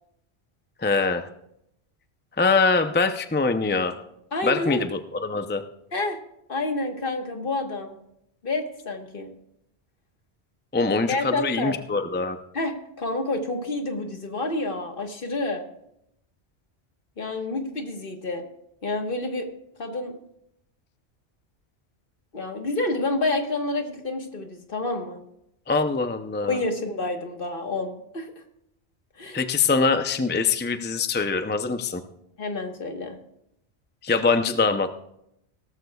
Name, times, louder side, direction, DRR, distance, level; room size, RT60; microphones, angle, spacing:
voice 1, 0.8-1.3 2.4-3.9 4.4-5.6 10.7-12.4 25.7-26.6 29.3-32.0 34.0-34.9, left 4 dB, 15° left, 8 dB, 0.4 m, -23 dB
voice 2, 4.3-4.9 5.9-6.2 6.5-8.0 8.4-9.3 11.1-11.8 12.5-15.6 17.2-18.4 18.8-19.5 19.8-20.2 22.3-25.2 26.4-28.3 29.2-29.4 32.4-33.2, left 2 dB, 55° left, 4 dB, 1.5 m, -29 dB
17.5 x 13.5 x 2.3 m, 0.78 s
omnidirectional pair, 1.1 m